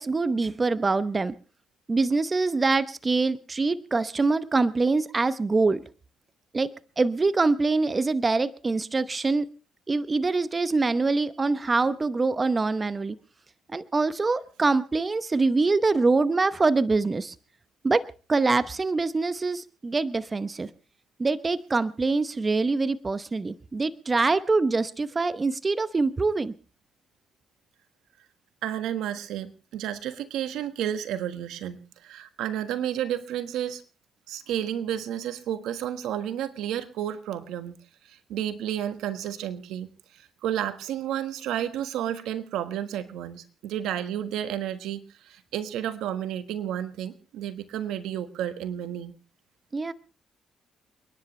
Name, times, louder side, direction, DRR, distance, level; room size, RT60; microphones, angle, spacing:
voice 1, 0.0-1.3 1.9-5.8 6.5-6.7 7.0-9.5 9.9-13.2 13.7-17.3 17.8-18.0 18.3-20.7 21.2-26.5 49.7-49.9, right 3 dB, 25° right, 14 dB, 0.8 m, -24 dB
voice 2, 28.6-31.8 32.0-33.8 34.3-37.7 38.0-49.1, right 10 dB, 85° right, 11 dB, 1.4 m, -31 dB
29.5 x 10.5 x 3.2 m, 0.34 s
cardioid pair, 90°, 0 cm